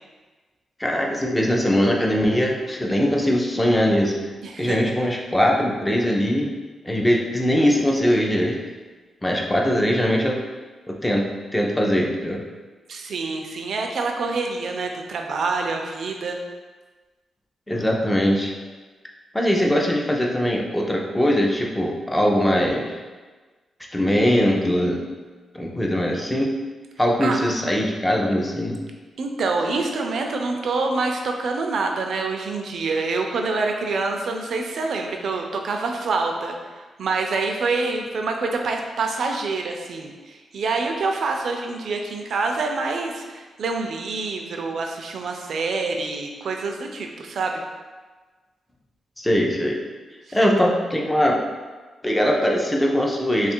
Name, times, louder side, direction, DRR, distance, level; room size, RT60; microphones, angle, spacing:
voice 1, 0.8-4.1 4.6-6.5 6.8-8.6 9.2-10.4 10.9-12.4 17.7-18.5 19.3-23.0 23.9-25.0 25.5-26.5 27.0-28.8 49.2-49.8 50.3-51.4 52.0-53.5, equal, 10° left, -1 dB, 0.5 m, -21 dB
voice 2, 4.4-4.8 12.9-16.4 27.2-27.4 29.2-47.6 50.3-50.4, right 3 dB, 65° right, 3 dB, 0.4 m, -26 dB
3.2 x 2.4 x 4.3 m, 1.3 s
wide cardioid pair, 140°, 0 cm